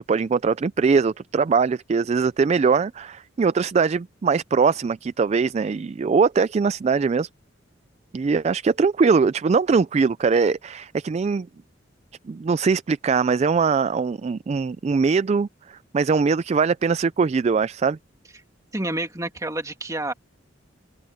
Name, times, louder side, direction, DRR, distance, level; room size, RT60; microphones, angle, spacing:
voice 1, 0.0-7.3 8.1-11.5 12.3-18.0, right 5 dB, 35° right, 0.3 m, -21 dB
voice 2, 18.7-20.1, right 1 dB, 15° right, 2.3 m, -28 dB
open air
head